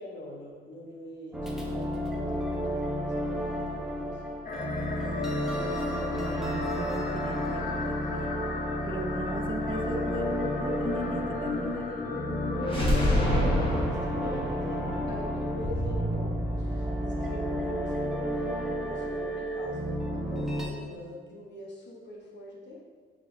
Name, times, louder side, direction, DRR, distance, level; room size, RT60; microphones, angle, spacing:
voice 1, 0.0-4.2 12.7-14.8 15.1-16.3 16.6-22.8, left 1 dB, 65° left, -2 dB, 0.9 m, -43 dB
sound 1, 1.3-20.7, equal, ahead, 0.8 m, -32 dB
sound 2, 4.5-13.8, left 4 dB, 45° left, 0.5 m, -35 dB
voice 2, 6.1-8.3 8.8-11.9, right 3 dB, 25° right, 4 dB, 0.4 m, -39 dB
sound 3, 12.6-16.5, left 1 dB, 25° left, 1.3 m, -28 dB
7.1 x 2.8 x 2.6 m, 1.5 s
cardioid pair, 90°, 20 cm